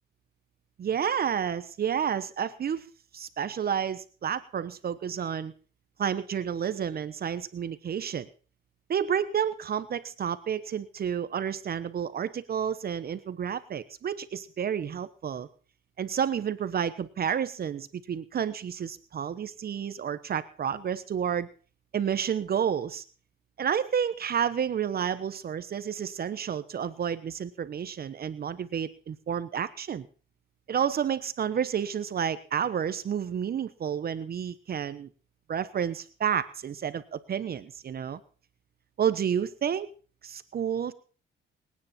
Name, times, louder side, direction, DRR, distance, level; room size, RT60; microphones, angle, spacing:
voice 1, 0.8-2.9 3.1-5.5 6.0-8.3 8.9-15.5 16.0-21.5 21.9-23.0 23.6-30.1 30.7-35.1 35.5-38.2 39.0-39.9 40.2-40.9, right 8 dB, 50° right, 14 dB, 1.1 m, -30 dB
24.5 x 9.7 x 4.3 m, 0.39 s
cardioid pair, 90°, 20 cm